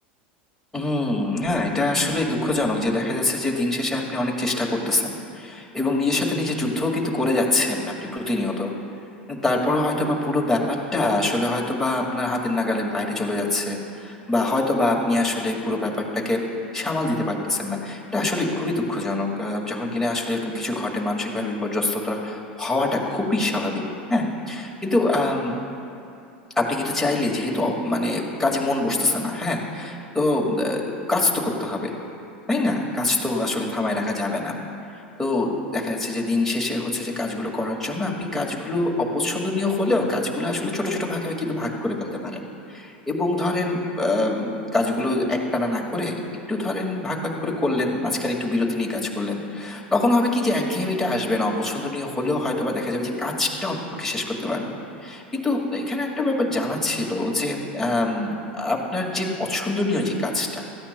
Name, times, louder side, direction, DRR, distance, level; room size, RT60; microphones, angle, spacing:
voice 1, 0.7-8.7 9.3-16.4 16.7-23.8 24.1-25.6 26.6-31.9 32.5-34.5 35.2-46.1 46.5-54.8 55.0-60.7, left 2 dB, 5° left, -2 dB, 2.0 m, -24 dB
17.0 x 13.5 x 2.3 m, 2.6 s
hypercardioid pair, 85°, 6 cm